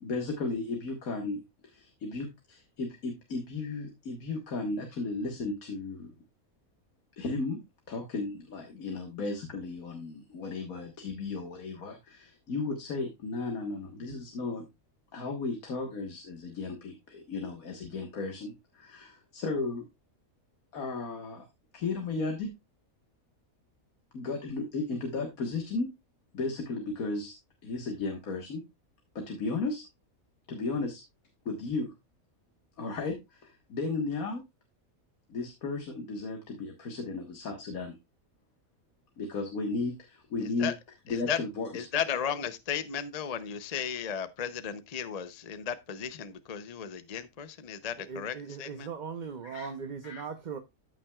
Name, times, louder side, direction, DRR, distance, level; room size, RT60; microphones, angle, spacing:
voice 1, 0.0-6.1 7.2-7.6 7.9-14.7 15.1-19.9 20.7-21.5 21.7-22.5 24.1-25.9 26.3-27.3 27.6-28.6 29.2-29.9 30.5-31.0 31.5-31.9 32.8-34.4 35.3-37.9 39.2-40.7 41.1-41.8 49.4-49.7 50.0-50.2, left 3 dB, 90° left, 2.0 m, -35 dB
voice 2, 41.7-48.9, left 8 dB, 35° left, 0.7 m, -35 dB
voice 3, 48.0-50.6, right 6 dB, 40° right, 0.8 m, -39 dB
14.0 x 5.9 x 2.3 m
omnidirectional pair, 1.4 m